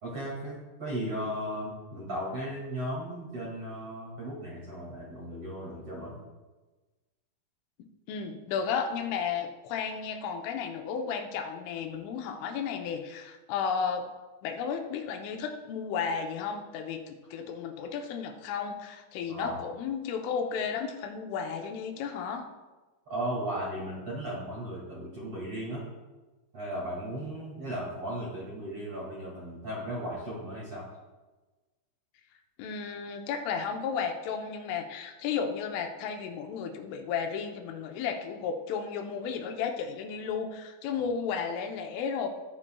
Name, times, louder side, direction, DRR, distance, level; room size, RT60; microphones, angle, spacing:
voice 1, 0.0-6.1 19.3-19.6 23.1-25.8 26.5-30.9, right 1 dB, 45° right, -6 dB, 2.2 m, -36 dB
voice 2, 8.1-14.1 14.4-22.5 32.6-42.3, left 6 dB, 80° left, 4 dB, 3.3 m, -33 dB
15.0 x 9.9 x 2.3 m, 1.2 s
omnidirectional pair, 5.6 m